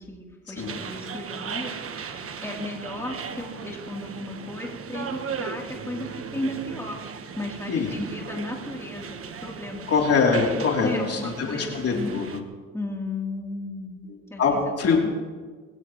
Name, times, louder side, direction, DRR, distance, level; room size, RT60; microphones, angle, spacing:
voice 1, 0.1-1.7 2.4-7.0 7.4-9.9 10.2-10.4 10.8-12.2 12.7-14.0 14.3-14.6 14.9-15.1, left 1 dB, 10° left, -1 dB, 3.3 m, -34 dB
sound 1, 0.6-12.4, right 6 dB, 50° right, 1.4 m, -37 dB
voice 2, 9.9-12.4 14.4-15.0, left 5 dB, 55° left, -1 dB, 3.3 m, -23 dB
22.0 x 17.5 x 3.1 m, 1.5 s
cardioid pair, 80°, 29 cm